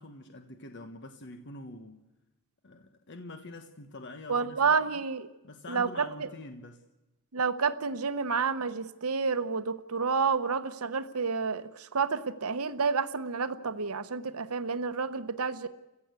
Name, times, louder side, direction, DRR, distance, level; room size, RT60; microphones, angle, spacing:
voice 1, 0.0-2.0 2.6-5.0 5.4-6.8, left 2 dB, 55° left, 1.3 m, -45 dB
voice 2, 4.3-5.3 5.7-6.3 7.3-15.7, right 5 dB, 90° right, 1.0 m, -29 dB
30.0 x 15.5 x 8.2 m
head